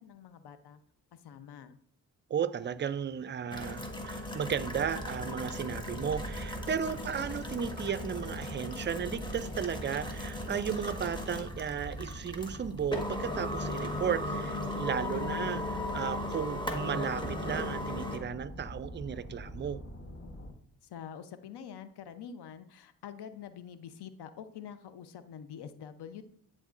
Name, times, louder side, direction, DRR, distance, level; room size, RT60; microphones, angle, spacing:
voice 1, 0.0-0.8 1.1-1.8 15.1-15.6 20.8-26.2, left 8 dB, 60° left, 0.8 m, -46 dB
voice 2, 2.3-15.6 15.9-19.8, right 8 dB, 25° right, 0.4 m, -34 dB
sound 1, 3.5-18.2, left 1 dB, 10° left, 1.3 m, -37 dB
sound 2, 4.5-20.5, equal, 30° left, 1.2 m, -45 dB
10.0 x 3.7 x 2.5 m
hypercardioid pair, 45°, 45 cm